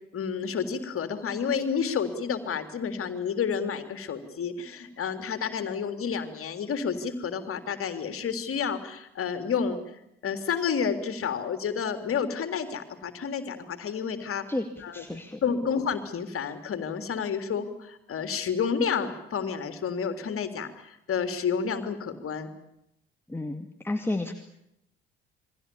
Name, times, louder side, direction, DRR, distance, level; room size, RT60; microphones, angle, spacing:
voice 1, 0.1-9.8 10.2-14.4 14.8-15.0 15.4-22.5, left 6 dB, 45° left, 9 dB, 3.5 m, -30 dB
voice 2, 14.5-15.7 23.3-24.3, left 2 dB, 5° left, 6 dB, 2.4 m, -32 dB
29.0 x 22.5 x 7.1 m, 0.81 s
figure-of-eight pair, 55°, 31 cm